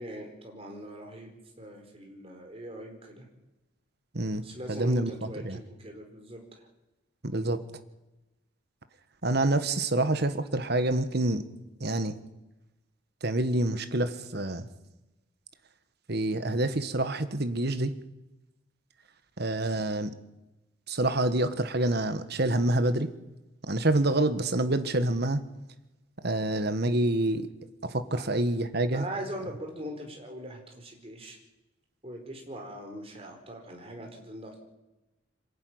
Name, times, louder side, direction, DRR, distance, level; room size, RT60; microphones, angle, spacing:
voice 1, 0.0-3.3 4.4-6.7 28.1-28.2 28.9-31.4 32.0-34.6, right 1 dB, 30° right, 2 dB, 4.6 m, -41 dB
voice 2, 4.7-5.6 7.2-7.6 9.2-11.4 11.8-12.2 13.2-14.7 16.1-17.9 19.4-20.1 20.9-23.1 23.7-25.4 26.2-27.5 27.8-29.0, right 1 dB, 55° right, 10 dB, 1.5 m, -27 dB
26.5 x 11.5 x 9.6 m, 1.0 s
head